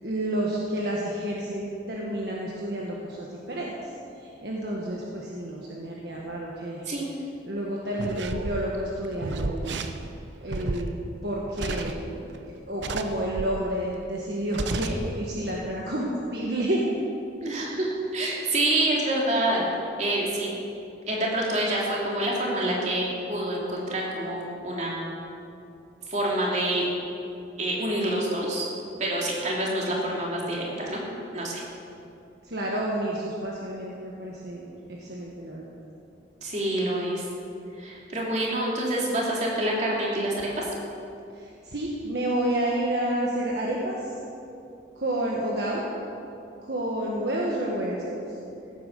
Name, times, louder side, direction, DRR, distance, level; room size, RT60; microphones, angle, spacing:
voice 1, 0.0-3.7 4.2-6.8 7.4-9.8 10.4-11.0 11.2-16.8 32.4-35.7 41.3-44.2 45.0-45.9 46.6-48.2, right 1 dB, 60° right, -3 dB, 1.5 m, -30 dB
sound 1, 8.0-12.4 12.8-13.7 14.1-14.2 14.5-15.2 15.4-15.6, right 2 dB, 75° right, 0.8 m, -32 dB
voice 2, 17.4-19.6 20.0-20.5 21.1-25.1 26.1-26.9 27.6-28.7 29.0-31.0 31.3-31.6 36.4-37.2 37.8-40.7, right 1 dB, 40° right, -3 dB, 3.0 m, -27 dB
16.5 x 9.2 x 6.7 m, 2.7 s
head